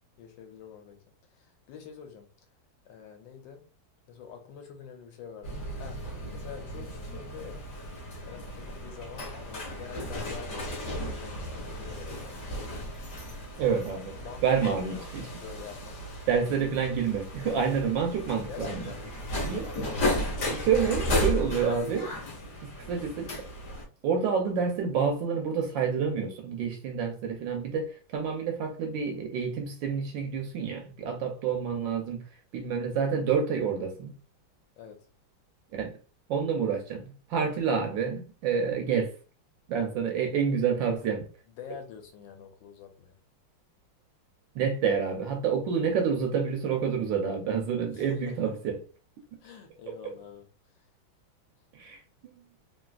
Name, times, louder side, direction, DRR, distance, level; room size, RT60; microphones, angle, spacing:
voice 1, 0.2-1.0 1.3-2.3 2.8-3.7 4.1-7.7 8.2-12.4 14.2-14.4 14.7-15.1 15.4-16.0 18.5-19.2 34.8-35.1 41.0-41.1 41.5-43.2 47.9-48.6 49.4-50.5 50.7-50.9, left 7 dB, 75° left, 1.3 m, -46 dB
sound 1, 5.4-23.8, left 1 dB, 50° left, 1.0 m, -35 dB
voice 2, 13.6-14.1 14.4-15.2 16.3-18.9 19.4-19.7 20.5-22.1 22.6-23.3 24.0-32.2 32.5-34.1 35.7-35.9 36.3-39.1 39.7-41.2 44.5-48.8 51.7-52.4, right 6 dB, 75° right, 1.2 m, -28 dB
3.2 x 2.7 x 2.3 m
omnidirectional pair, 2.2 m